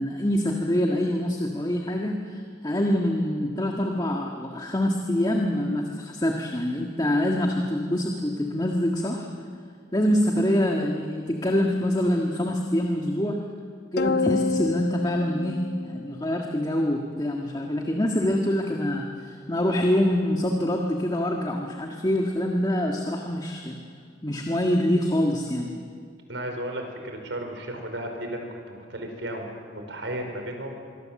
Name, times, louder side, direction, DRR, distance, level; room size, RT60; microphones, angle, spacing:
voice 1, 0.0-9.3 9.9-13.4 13.9-23.8 24.2-25.7, left 1 dB, 20° left, 1 dB, 1.7 m, -25 dB
sound 1, 14.0-16.6, left 4 dB, 60° left, 0.6 m, -28 dB
voice 2, 26.3-30.8, right 1 dB, 85° right, 4 dB, 5.0 m, -34 dB
26.0 x 23.0 x 7.7 m, 2.1 s
head